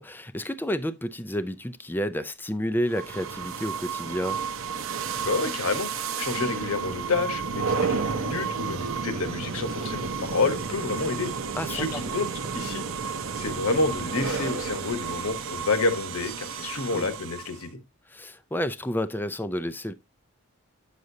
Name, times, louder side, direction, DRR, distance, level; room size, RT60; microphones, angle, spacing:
voice 1, 0.0-4.4 11.5-12.1 16.9-17.1 18.1-19.9, equal, 10° left, 0.4 m, -30 dB
sound 1, 2.9-17.7, right 5 dB, 65° right, 0.7 m, -32 dB
voice 2, 5.2-11.3 11.7-12.3 12.5-12.8 13.4-17.7, left 3 dB, 75° left, 1.2 m, -29 dB
9.2 x 6.4 x 2.7 m
head